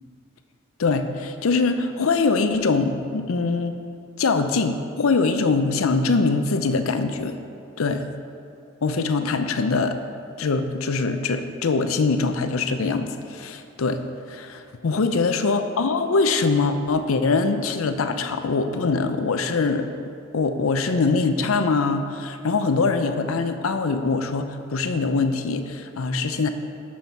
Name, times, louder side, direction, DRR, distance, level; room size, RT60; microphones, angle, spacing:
voice 1, 0.8-3.8 4.2-7.4 7.8-8.0 8.8-10.0 10.4-19.9 20.3-26.5, left 4 dB, 85° left, 8 dB, 0.6 m, -23 dB
7.5 x 5.6 x 5.6 m, 2.5 s
head